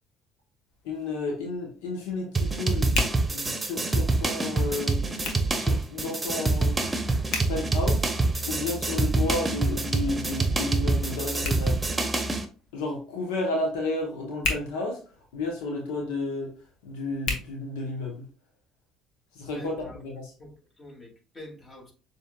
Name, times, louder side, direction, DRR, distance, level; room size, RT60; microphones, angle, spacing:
Hands, 0.7-18.3, left 3 dB, 65° left, 1.3 m, -39 dB
voice 1, 0.8-2.9 3.3-6.9 7.5-8.1 8.4-11.8 12.7-15.0 15.3-16.5 16.8-18.3 19.3-20.3, left 2 dB, 85° left, 0 dB, 0.9 m, -32 dB
sound 1, 2.3-12.4, right 3 dB, 20° right, 0.9 m, -26 dB
Musical instrument, 6.8-12.4, right 2 dB, 35° right, 0.5 m, -38 dB
voice 2, 19.5-20.0 20.4-21.9, left 1 dB, 35° left, -1 dB, 2.5 m, -45 dB
6.9 x 3.3 x 2.3 m, 0.36 s
hypercardioid pair, 70°, 0 cm